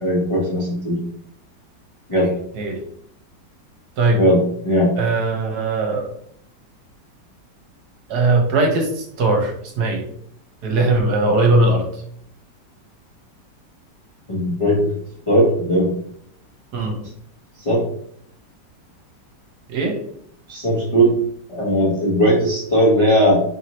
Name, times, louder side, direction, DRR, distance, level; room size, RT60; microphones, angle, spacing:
voice 1, 0.0-1.0 2.1-2.3 4.1-4.9 14.3-14.9 15.3-15.9 17.6-17.8 20.5-21.1 21.5-23.4, equal, 50° left, -5 dB, 0.3 m, -18 dB
voice 2, 5.0-6.1 8.1-10.0 10.6-11.9 16.7-17.0 19.7-20.0, right 2 dB, 65° right, 1 dB, 1.3 m, -19 dB
4.0 x 3.2 x 3.0 m, 0.67 s
omnidirectional pair, 2.0 m